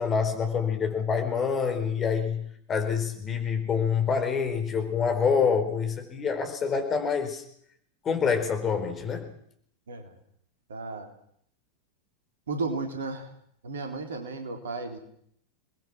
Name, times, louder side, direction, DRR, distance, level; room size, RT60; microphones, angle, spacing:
voice 1, 0.0-7.4 8.0-9.3, left 6 dB, 25° left, 6 dB, 4.6 m, -26 dB
voice 2, 9.9-10.2 10.7-11.1 12.5-13.3 13.6-15.0, right 3 dB, 65° right, 6 dB, 3.9 m, -34 dB
27.5 x 20.5 x 6.3 m, 0.67 s
figure-of-eight pair, 90°, 0 cm